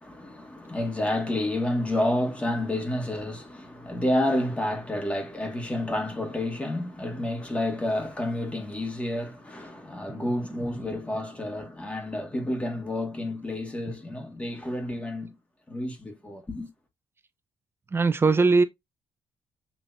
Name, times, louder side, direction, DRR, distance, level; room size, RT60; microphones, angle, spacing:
voice 1, 0.0-15.3 15.7-16.7, left 1 dB, 15° left, 1.8 m, -30 dB
voice 2, 10.2-11.0 17.9-18.6, right 4 dB, 25° right, 0.6 m, -23 dB
6.9 x 2.9 x 2.6 m
cardioid pair, 120°, 9 cm